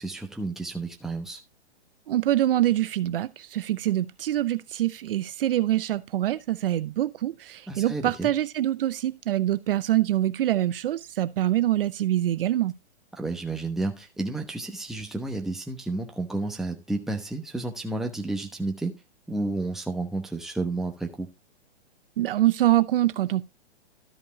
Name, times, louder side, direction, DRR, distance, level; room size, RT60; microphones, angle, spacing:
voice 1, 0.0-1.4 7.7-8.3 13.1-18.9 19.3-21.3, right 2 dB, ahead, 1.0 m, -31 dB
voice 2, 2.1-12.7 22.2-23.4, right 13 dB, 55° right, 0.6 m, -25 dB
13.0 x 5.3 x 3.9 m
hypercardioid pair, 155°, 33 cm